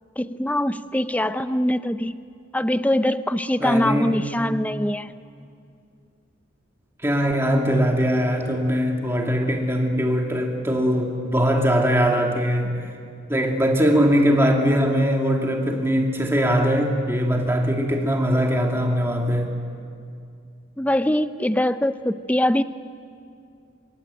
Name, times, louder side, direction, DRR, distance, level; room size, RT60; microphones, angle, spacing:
voice 1, 0.2-2.2 2.5-5.2 20.8-22.6, left 1 dB, 5° left, 12 dB, 0.6 m, -23 dB
voice 2, 3.6-4.4 7.0-12.9 13.3-19.5, equal, 10° right, 1 dB, 2.5 m, -21 dB
25.0 x 23.0 x 9.0 m, 2.4 s
head